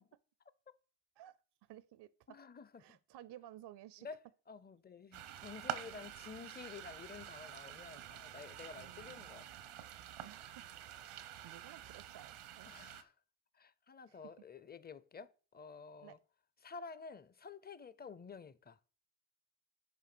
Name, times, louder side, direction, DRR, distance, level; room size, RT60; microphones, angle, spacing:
voice 1, 1.6-2.4 2.8-4.1 5.8-6.0 8.7-9.3 10.2-10.6 11.0-12.7 14.1-14.3 16.0-16.2, right 13 dB, 60° right, 0.5 m, -56 dB
voice 2, 2.3-3.0 4.0-4.2 4.5-9.5 12.6-13.1 13.6-16.2 16.6-18.8, left 5 dB, 20° left, 0.5 m, -51 dB
sound 1, 5.1-13.0, right 11 dB, 80° right, 0.8 m, -48 dB
5.7 x 4.7 x 6.0 m
cardioid pair, 70°, 48 cm